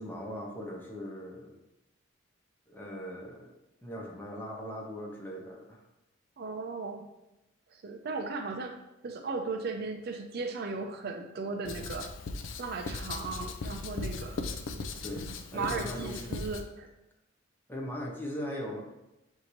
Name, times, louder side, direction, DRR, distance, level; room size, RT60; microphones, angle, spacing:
voice 1, 0.0-1.6 2.7-3.5 3.8-5.8 15.0-16.2 17.7-18.8, equal, 10° left, -2 dB, 0.7 m, -39 dB
voice 2, 6.4-7.1 7.7-8.8 9.0-12.1 12.6-14.4 15.2-16.9, right 3 dB, 55° right, 4 dB, 0.5 m, -36 dB
Writing, 11.6-16.7, left 3 dB, 70° left, 0.4 m, -38 dB
6.3 x 2.7 x 3.0 m, 0.93 s
head